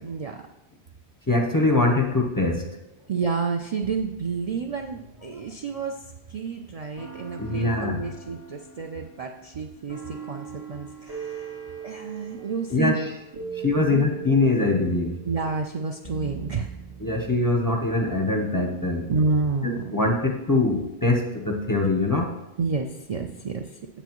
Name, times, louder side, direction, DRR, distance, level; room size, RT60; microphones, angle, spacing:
voice 1, 0.0-0.4 3.1-6.0 6.3-11.5 11.8-13.0 13.8-14.0 15.2-16.7 19.1-19.8 22.6-23.8, right 4 dB, 55° right, 3 dB, 0.4 m, -29 dB
voice 2, 1.3-2.6 7.4-8.0 12.7-13.1 13.6-15.1 17.0-19.1 19.6-22.3, left 2 dB, 25° left, 2 dB, 0.6 m, -23 dB
sound 1, 1.9-3.1 3.8-6.4 7.0-17.4, right 7 dB, 85° right, 2.4 m, -41 dB
8.1 x 6.9 x 3.0 m, 0.91 s
omnidirectional pair, 1.1 m